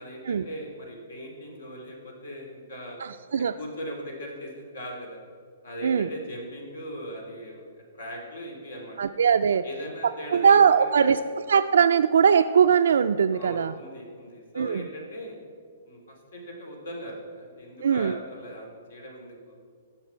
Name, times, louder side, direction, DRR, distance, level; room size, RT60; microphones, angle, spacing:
voice 1, 0.0-3.0 3.6-5.2 5.6-7.7 7.9-9.1 9.6-11.2 13.3-15.4 15.8-19.5, equal, 85° left, 1 dB, 2.7 m, -39 dB
voice 2, 9.0-9.6 10.3-11.2 11.5-13.7 14.5-14.9 17.8-18.2, right 7 dB, 85° right, 8 dB, 0.3 m, -20 dB
15.0 x 5.9 x 4.4 m, 2.1 s
hypercardioid pair, 150°, 0 cm